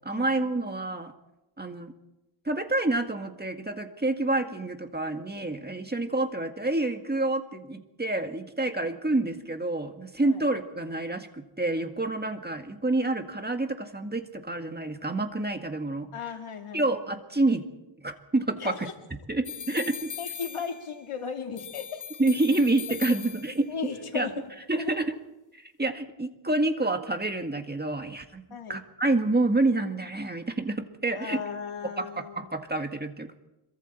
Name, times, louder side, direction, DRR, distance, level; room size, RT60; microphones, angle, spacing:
voice 1, 0.0-1.1 1.6-1.9 2.5-16.1 16.7-17.7 18.0-18.7 19.3-20.1 22.2-23.7 24.1-24.3 24.7-25.1 25.5-28.4 28.7-31.4 32.0-32.1 32.4-33.5, right 2 dB, 20° right, 6 dB, 1.8 m, -28 dB
voice 2, 16.1-16.8 18.6-18.8 20.2-22.0 23.7-25.0 28.5-28.8 31.1-32.6, left 6 dB, 90° left, 4 dB, 2.6 m, -36 dB
sound 1, 19.4-21.1 21.6-23.8, left 8 dB, 40° left, 1.0 m, -40 dB
26.0 x 23.0 x 4.4 m, 0.96 s
wide cardioid pair, 105°, 49 cm